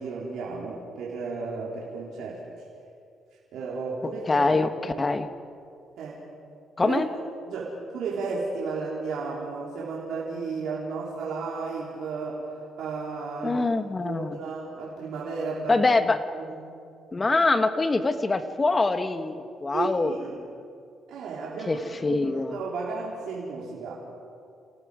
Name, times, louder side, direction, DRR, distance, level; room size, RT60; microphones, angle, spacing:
voice 1, 0.0-2.4 3.5-4.4 4.9-5.0 6.0-6.2 6.8-7.0 7.5-13.6 14.0-15.8 16.3-16.6 19.7-20.4 21.1-23.9, right 4 dB, 80° right, -5 dB, 3.7 m, -33 dB
voice 2, 4.3-5.3 6.8-7.1 13.4-14.4 15.7-16.2 17.1-20.1 21.7-21.8 22.0-22.6, left 3 dB, 25° left, 9 dB, 1.3 m, -24 dB
30.0 x 17.5 x 5.0 m, 2.4 s
cardioid pair, 90°, 0 cm